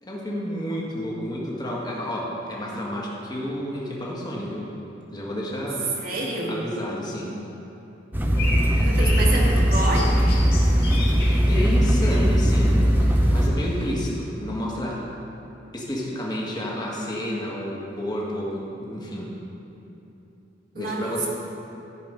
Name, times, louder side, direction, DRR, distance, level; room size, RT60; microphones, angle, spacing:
voice 1, 0.0-4.7 5.1-5.9 6.5-7.4 11.5-12.8 13.3-15.0 15.7-19.4 20.7-21.3, equal, 20° left, -4 dB, 1.6 m, -30 dB
voice 2, 6.0-6.6 8.8-10.1 20.7-21.3, right 2 dB, 50° right, -4 dB, 1.7 m, -28 dB
sound 1, 8.1-13.5, equal, 10° right, 0.7 m, -19 dB
sound 2, 8.4-13.9, left 1 dB, 55° left, 2.0 m, -36 dB
14.0 x 5.1 x 5.2 m, 2.9 s
head